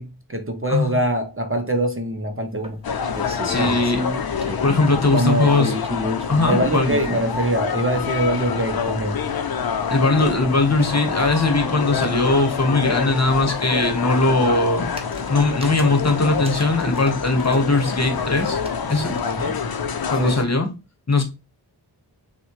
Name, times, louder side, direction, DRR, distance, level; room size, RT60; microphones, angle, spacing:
voice 1, 0.0-2.8 3.6-3.8 5.1-5.6 6.5-9.2 19.2-19.6 20.2-20.4, right 1 dB, 30° right, 0.6 m, -23 dB
sound 1, 2.6-5.0 5.4-7.3 8.2-8.3 8.8-8.9 9.1-9.2 9.4-9.5 11.5-11.6 11.8-11.9 13.9-14.1 14.8-17.6 17.9-19.5, left 1 dB, 15° right, 0.9 m, -32 dB
sound 2, 2.8-20.4, left 6 dB, 60° left, 0.6 m, -26 dB
voice 2, 3.4-4.0 4.6-5.7 6.3-6.9 9.9-14.9 15.3-18.6 18.9-19.2 20.1-20.7 21.1-21.2, left 2 dB, 40° left, 1.1 m, -20 dB
6.1 x 2.2 x 3.1 m
wide cardioid pair, 55°, 42 cm